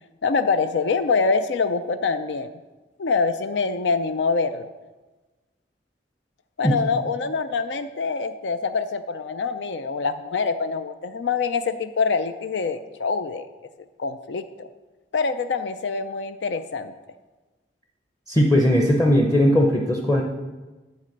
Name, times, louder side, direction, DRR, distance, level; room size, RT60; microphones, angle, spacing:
voice 1, 0.2-2.5 3.0-4.7 6.6-13.5 14.0-14.7 15.1-16.9, left 4 dB, 80° left, 10 dB, 0.4 m, -25 dB
voice 2, 18.3-20.2, equal, 15° left, 0 dB, 0.7 m, -18 dB
10.5 x 4.2 x 6.6 m, 1.2 s
head